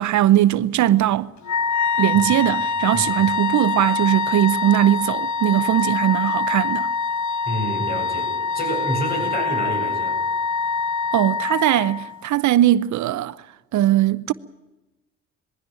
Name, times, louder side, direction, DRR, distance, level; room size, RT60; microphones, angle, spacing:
voice 1, 0.0-1.3 2.0-6.9 11.1-13.4 13.7-14.3, right 13 dB, 70° right, 0.7 m, -19 dB
Wind instrument woodwind instrument, 1.4-12.2, left 5 dB, 70° left, 1.4 m, -24 dB
voice 2, 7.5-10.2, equal, 30° left, 8.0 m, -28 dB
21.0 x 16.0 x 9.0 m
cardioid pair, 90°, 30 cm